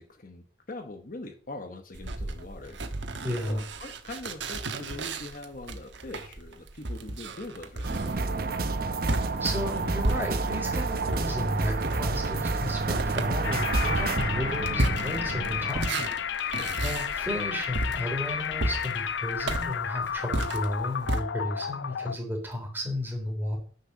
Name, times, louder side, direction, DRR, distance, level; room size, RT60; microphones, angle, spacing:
voice 1, 0.0-2.8 3.4-8.0 16.5-16.8, left 2 dB, 45° left, 6 dB, 0.9 m, -42 dB
sound 1, 1.9-10.7 11.0-21.2, right 2 dB, 80° right, 1.2 m, -33 dB
voice 2, 3.2-3.6 9.4-16.0 16.3-23.6, left 1 dB, 10° right, 0 dB, 3.4 m, -33 dB
sound 2, 7.8-15.7, right 3 dB, 55° right, 0.8 m, -29 dB
sound 3, 13.4-22.2, left 8 dB, 75° left, 0.5 m, -32 dB
10.0 x 5.6 x 6.7 m, 0.43 s
head